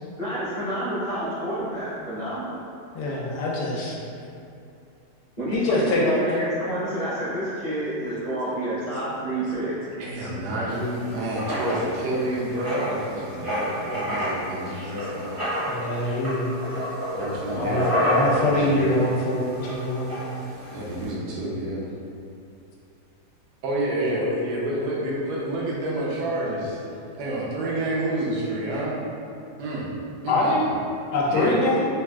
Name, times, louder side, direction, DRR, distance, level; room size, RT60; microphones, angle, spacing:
voice 1, 0.2-2.6 5.4-9.8, right 1 dB, 35° left, -13 dB, 0.7 m, -29 dB
voice 2, 2.9-4.3 5.5-6.4 10.3-10.8 15.7-16.5 17.5-20.1 30.3-30.7 31.1-31.8, left 2 dB, 75° left, -4 dB, 1.1 m, -24 dB
voice 3, 10.0-15.4 17.1-19.0 20.7-21.9 23.6-26.8 27.2-29.0 29.6-29.9 30.2-30.7 31.3-31.6, right 1 dB, 75° right, -5 dB, 1.1 m, -28 dB
Writing, 10.7-21.1, equal, 20° right, 0.5 m, -30 dB
3.4 x 2.4 x 2.2 m, 2.6 s
omnidirectional pair, 1.9 m